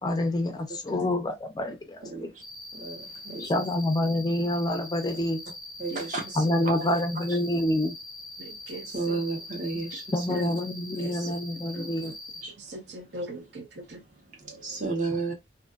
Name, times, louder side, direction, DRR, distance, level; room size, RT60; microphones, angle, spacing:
voice 1, 0.0-2.3 3.4-5.4 6.4-7.9 10.1-12.1, left 1 dB, 20° left, 0.3 m, -27 dB
voice 2, 2.1-2.4 2.7-3.5 5.8-7.4 8.9-10.5 10.9-11.4 12.0-12.1 12.4-12.7 14.1-15.3, right 3 dB, 45° right, 0.9 m, -34 dB
Cricket, 2.4-12.4, left 2 dB, ahead, 0.9 m, -43 dB
voice 3, 8.4-9.2 10.3-10.5 11.0-11.9 12.6-14.0, right 1 dB, 70° right, 0.7 m, -40 dB
2.4 x 2.4 x 2.2 m
head